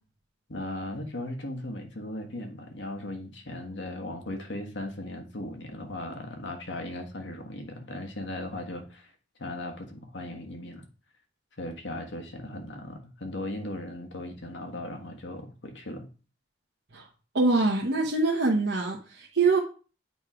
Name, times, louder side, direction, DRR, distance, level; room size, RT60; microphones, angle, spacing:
voice 1, 0.5-9.1 9.4-10.8 11.6-16.1, left 1 dB, 75° left, 1.4 m, -37 dB
voice 2, 17.3-19.6, right 3 dB, 75° right, 1.1 m, -24 dB
8.4 x 3.2 x 4.9 m
head